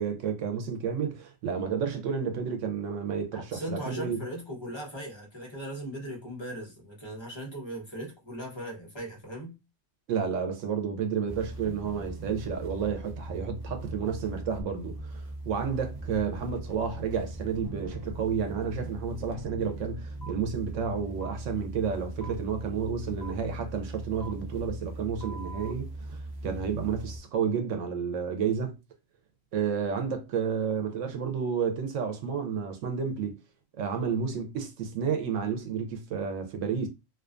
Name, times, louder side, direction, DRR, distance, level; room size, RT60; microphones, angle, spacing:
voice 1, 0.0-4.2 10.1-26.2 26.4-28.8 29.5-33.3 33.8-36.9, right 6 dB, 75° right, 0.9 m, -31 dB
voice 2, 3.3-9.6, right 1 dB, 25° left, 0.8 m, -38 dB
sound 1, 11.3-27.2, right 2 dB, 35° right, 0.4 m, -40 dB
sound 2, 20.2-20.3 21.2-21.3 22.2-22.3 23.2-23.3 24.2-24.3 25.2-25.7, right 4 dB, 60° left, 0.4 m, -44 dB
2.4 x 2.3 x 2.4 m
omnidirectional pair, 1.3 m